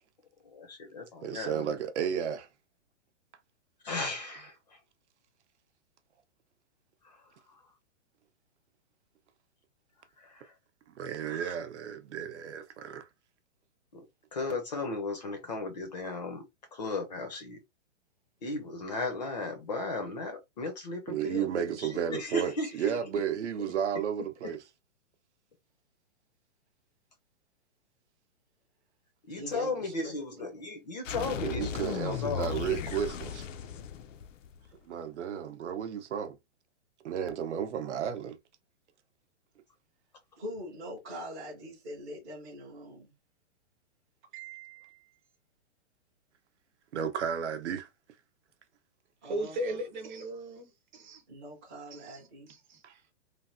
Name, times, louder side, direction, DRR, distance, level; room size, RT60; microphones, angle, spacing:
voice 1, 0.5-1.7 3.8-4.8 7.0-7.2 10.2-10.5 11.3-11.5 13.9-14.0 14.3-16.4 16.7-17.6 18.4-22.9 24.4-24.5 29.3-32.5, left 3 dB, 35° left, 0.5 m, -36 dB
voice 2, 1.2-2.5 11.0-13.1 21.1-24.6 31.4-33.5 34.9-36.4 37.0-38.4 46.9-47.9 52.8-52.9, right 8 dB, 65° right, 0.7 m, -33 dB
voice 3, 29.3-30.4 33.7-33.8 40.4-43.1 44.3-45.1 49.2-49.8 51.3-52.5, equal, 15° right, 0.5 m, -43 dB
sound 1, 31.0-34.7, left 8 dB, 80° left, 0.6 m, -36 dB
voice 4, 49.2-51.2 51.9-53.0, right 1 dB, 40° right, 0.9 m, -38 dB
3.3 x 2.1 x 2.5 m
hypercardioid pair, 170°, 37 cm